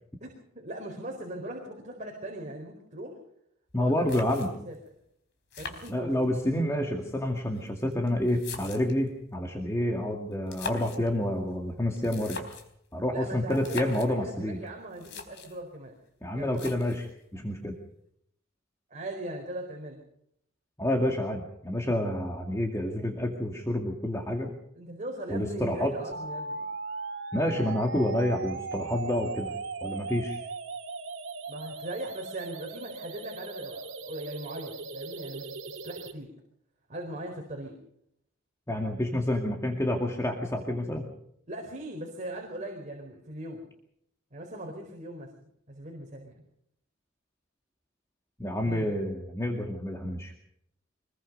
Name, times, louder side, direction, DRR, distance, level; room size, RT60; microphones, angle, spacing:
voice 1, 0.5-3.2 3.8-4.7 5.6-6.1 13.1-15.9 16.3-16.7 18.9-20.0 24.7-26.7 31.5-36.3 36.9-37.7 41.5-43.6 44.3-46.3 48.6-48.9, right 1 dB, 35° right, 1 dB, 4.3 m, -40 dB
sound 1, 3.7-3.8 4.1-4.8 5.5-6.5 7.4-9.1 10.3-11.1 12.0-12.8 13.5-14.1 14.7-14.8 14.9-15.6 16.5-17.1, left 4 dB, 55° left, 4.2 m, -41 dB
voice 2, 3.7-4.5 5.9-12.4 12.9-14.6 16.2-17.1 17.3-17.7 20.8-24.5 25.3-25.9 27.3-29.5 29.8-30.4 38.7-41.1 48.4-50.3, left 1 dB, 15° left, 2 dB, 2.2 m, -29 dB
sound 2, 26.1-36.1, right 4 dB, 65° right, 2.9 m, -38 dB
24.5 x 21.5 x 5.4 m, 0.72 s
head